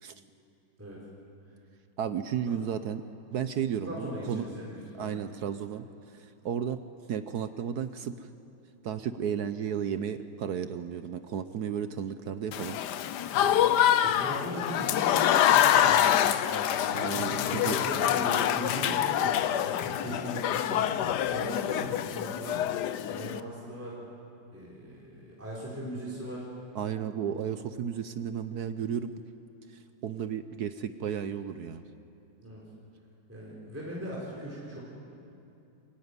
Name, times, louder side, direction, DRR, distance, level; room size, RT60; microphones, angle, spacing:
voice 1, 2.0-3.0 3.3-4.5 5.0-5.8 6.2-6.8 7.1-8.3 8.8-12.8 16.9-17.8 26.7-29.1 30.0-31.8, right 8 dB, 65° right, 10 dB, 1.0 m, -33 dB
voice 2, 3.8-5.2 14.0-16.1 16.5-21.0 21.3-22.7 23.0-24.0 24.5-26.5 32.4-32.6 33.3-34.8, equal, 5° right, -7 dB, 4.3 m, -39 dB
Applause / Crowd, 12.5-23.4, left 11 dB, 65° left, 1.1 m, -26 dB
26.0 x 17.5 x 9.7 m, 2.7 s
omnidirectional pair, 2.3 m